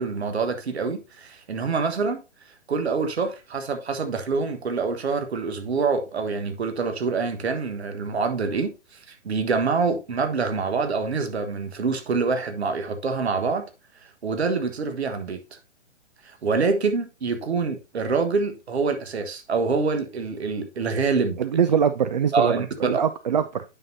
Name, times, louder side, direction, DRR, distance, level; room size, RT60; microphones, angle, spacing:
voice 1, 0.0-2.2 2.7-13.7 14.2-15.6 16.2-21.4 22.3-23.0, right 4 dB, 60° right, 1.4 m, -26 dB
voice 2, 21.4-23.6, right 7 dB, 40° right, 0.4 m, -23 dB
8.9 x 5.9 x 2.7 m
figure-of-eight pair, 130°, 36 cm